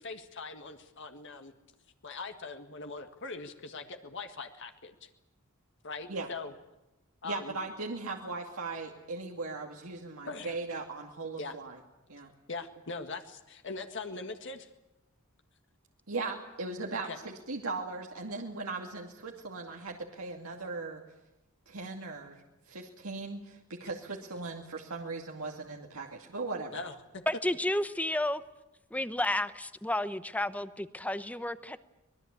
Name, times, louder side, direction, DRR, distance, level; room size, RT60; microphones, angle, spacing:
voice 1, 0.0-1.5 2.0-5.1 5.8-6.5 7.2-7.6 10.3-10.5 11.4-11.5 12.5-14.7 17.0-17.2 26.7-27.2, left 3 dB, 60° left, 6 dB, 1.8 m, -41 dB
voice 2, 7.2-11.8 12.1-12.3 16.1-21.0 21.7-26.8, right 3 dB, 85° right, 0 dB, 2.5 m, -38 dB
voice 3, 27.3-28.4 28.9-31.8, left 1 dB, 5° left, 12 dB, 0.9 m, -31 dB
25.0 x 21.0 x 8.5 m, 0.95 s
head